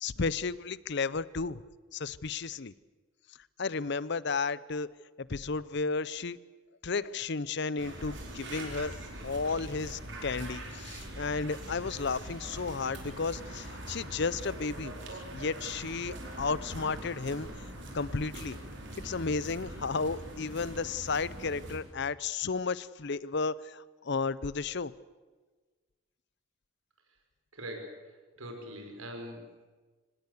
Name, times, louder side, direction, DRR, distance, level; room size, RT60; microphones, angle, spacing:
voice 1, 0.0-1.6 1.9-2.7 3.6-4.9 5.2-6.4 6.8-8.9 9.2-14.9 15.3-17.5 17.9-18.6 19.0-24.9, left 4 dB, 55° left, 19 dB, 0.7 m, -33 dB
sound 1, 7.8-21.8, right 1 dB, 55° right, 4.7 m, -43 dB
voice 2, 27.5-29.7, equal, 85° right, 4 dB, 5.6 m, -43 dB
24.5 x 19.0 x 8.3 m, 1.3 s
head